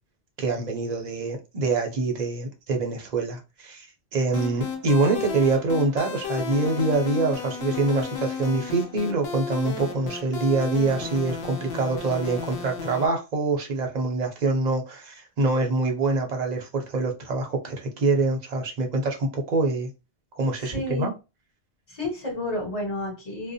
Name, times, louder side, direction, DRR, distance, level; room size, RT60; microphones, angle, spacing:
voice 1, 0.4-3.9 4.1-19.9 20.4-21.1, right 3 dB, 50° right, 0.7 m, -25 dB
sound 1, 4.3-13.1, left 5 dB, 75° left, 0.8 m, -33 dB
voice 2, 20.6-21.1 21.9-23.5, left 1 dB, 30° left, 1.4 m, -31 dB
2.5 x 2.1 x 2.6 m
omnidirectional pair, 1.1 m